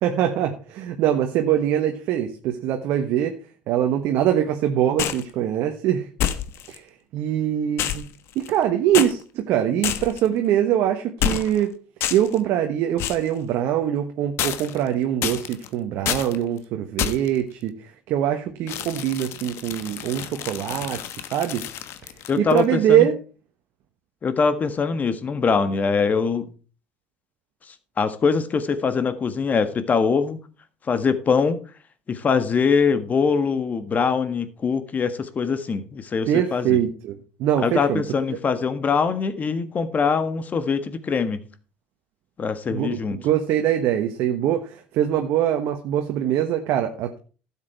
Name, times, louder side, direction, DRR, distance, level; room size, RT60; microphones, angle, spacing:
voice 1, 0.0-3.3 3.7-6.1 6.7-6.9 7.1-8.0 8.3-11.7 12.1-21.0 21.3-21.6 22.4-23.2 36.3-38.0 42.7-47.2, right 10 dB, 60° right, 5 dB, 1.2 m, -23 dB
sound 1, 5.0-5.3 6.2-6.8 7.8-8.6 8.9-9.1 9.8-10.3 11.2-11.6 12.0-12.4 13.0-13.3 14.4-14.9 15.2-15.7 16.0-16.4 17.0-17.4 18.7-22.6, left 11 dB, 60° left, 1.2 m, -28 dB
voice 2, 22.3-23.1 24.2-26.5 28.0-30.4 30.9-31.6 32.1-36.8 37.6-41.4 42.4-43.2, left 5 dB, 35° left, 11 dB, 1.6 m, -23 dB
12.5 x 7.4 x 4.6 m, 0.37 s
hypercardioid pair, 80°, 5 cm